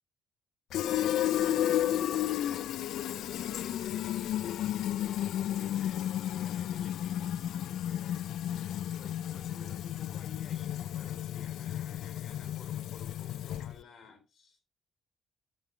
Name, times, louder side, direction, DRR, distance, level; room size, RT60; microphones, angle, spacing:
Fill (with liquid), 0.7-13.8, left 11 dB, 80° left, 0.3 m, -32 dB
voice 1, 1.3-14.6, left 4 dB, 55° left, 3.4 m, -54 dB
10.5 x 5.4 x 3.3 m
cardioid pair, 90°, 0 cm